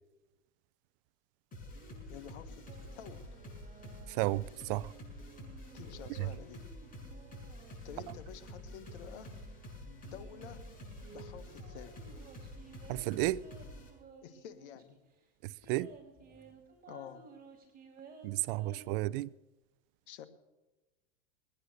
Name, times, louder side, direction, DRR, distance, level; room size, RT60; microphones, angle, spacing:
sound 1, 1.5-13.9, left 1 dB, 25° left, 7.8 m, -48 dB
sound 2, 1.7-9.5 10.0-15.0 15.2-15.3 15.6-18.9, right 4 dB, 25° right, 4.3 m, -56 dB
voice 1, 2.1-3.3 5.7-6.7 7.8-9.4 9.8-10.7 11.1-12.2 14.2-15.0 16.9-17.3 20.1-20.2, left 9 dB, 70° left, 1.6 m, -50 dB
voice 2, 4.1-4.9 12.9-13.4 15.4-15.9 18.2-19.3, right 18 dB, 50° right, 0.5 m, -33 dB
sound 3, 9.0-9.4 11.2-12.2 13.4-13.8 15.6-16.5, left 1 dB, 5° left, 4.3 m, -64 dB
21.5 x 9.8 x 6.5 m
hypercardioid pair, 115°, 36 cm